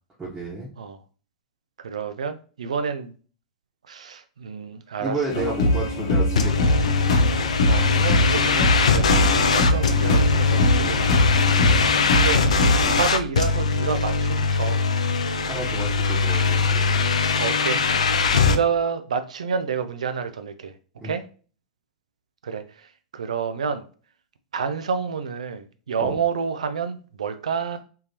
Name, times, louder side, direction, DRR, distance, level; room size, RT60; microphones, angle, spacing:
voice 1, 0.2-0.7 5.0-6.8 11.5-11.7 15.4-16.8 21.0-21.1 26.0-26.2, right 2 dB, 20° right, 1.0 m, -31 dB
voice 2, 1.8-3.1 3.9-5.6 7.6-11.3 12.1-12.4 12.9-14.8 16.3-16.5 17.4-18.1 18.3-20.7 21.0-21.2 22.4-23.8 24.5-27.8, right 6 dB, 75° right, 0.3 m, -29 dB
sound 1, 5.3-13.0, left 1 dB, 60° left, 0.9 m, -22 dB
sound 2, 6.4-18.6, left 4 dB, 75° left, 0.4 m, -21 dB
3.6 x 2.7 x 2.7 m
figure-of-eight pair, 95°, 4 cm